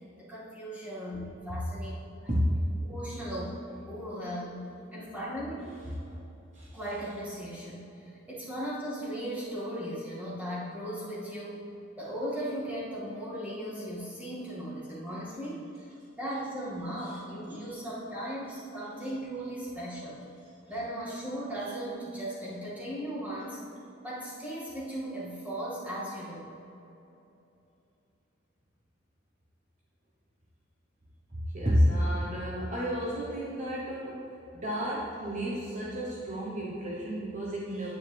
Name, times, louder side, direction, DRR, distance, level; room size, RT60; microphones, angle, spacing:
voice 1, 0.2-1.9 2.8-3.6 3.9-4.6 4.9-5.8 6.7-11.6 12.0-15.9 16.2-20.2 20.7-23.6 24.0-26.5, equal, 10° right, -8 dB, 2.3 m, -37 dB
voice 2, 31.3-37.9, equal, 40° right, -5 dB, 1.1 m, -30 dB
9.3 x 8.9 x 3.5 m, 2.9 s
head